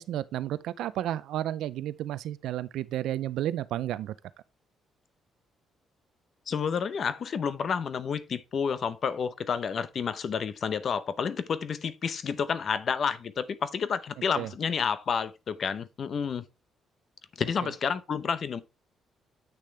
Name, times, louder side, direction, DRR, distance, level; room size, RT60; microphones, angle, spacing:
voice 1, 0.0-4.1 14.4-14.5 17.6-17.7, right 12 dB, 85° right, 0.4 m, -32 dB
voice 2, 6.5-16.4 17.4-18.6, left 6 dB, 55° left, 0.7 m, -30 dB
8.4 x 6.4 x 3.3 m
cardioid pair, 90°, 0 cm